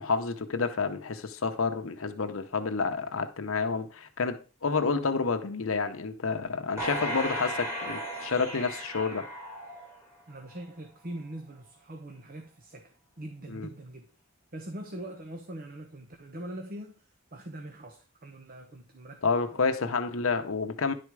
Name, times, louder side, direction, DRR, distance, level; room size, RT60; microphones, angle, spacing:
voice 1, 0.0-9.3 13.5-13.7 19.2-20.9, left 4 dB, 80° left, 0.8 m, -29 dB
sound 1, 6.8-10.2 10.7-10.8, equal, 15° right, 2.9 m, -35 dB
voice 2, 10.3-14.1 14.5-17.0 17.3-20.0, right 1 dB, 45° right, 1.1 m, -43 dB
11.0 x 4.3 x 4.8 m
head